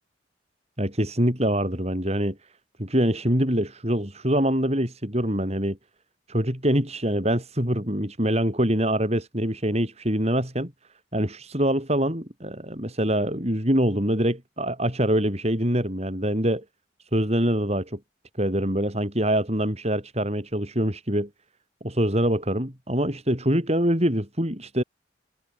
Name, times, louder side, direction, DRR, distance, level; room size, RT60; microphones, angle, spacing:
voice 1, 0.8-2.4 2.8-5.8 6.3-10.7 11.1-16.6 17.1-18.0 18.4-21.3 21.8-24.8, equal, 35° right, 7.5 m, -24 dB
head